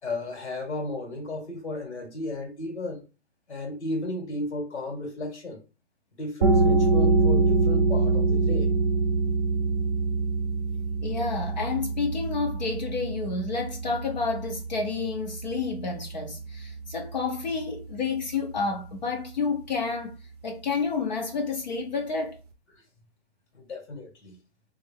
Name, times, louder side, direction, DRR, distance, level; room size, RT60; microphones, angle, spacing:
voice 1, 0.0-3.0 3.5-5.6 6.2-8.7 22.7-22.8 23.5-24.4, left 2 dB, 85° left, 2.1 m, -34 dB
sound 1, 6.4-17.8, right 3 dB, 35° right, 0.6 m, -25 dB
voice 2, 11.0-20.2 20.4-22.4, left 4 dB, 40° left, 0.6 m, -30 dB
3.2 x 2.5 x 3.5 m
hypercardioid pair, 165°, 33 cm